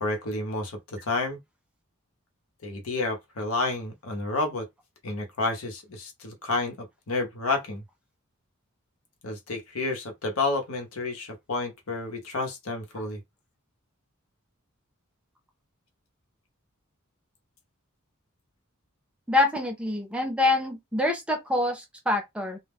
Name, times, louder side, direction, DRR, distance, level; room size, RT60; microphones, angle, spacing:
voice 1, 0.0-1.4 2.6-4.7 5.0-7.8 9.2-13.2, left 3 dB, 80° left, 0.8 m, -30 dB
voice 2, 19.3-22.6, left 2 dB, 5° right, 0.6 m, -26 dB
2.2 x 2.1 x 3.4 m
head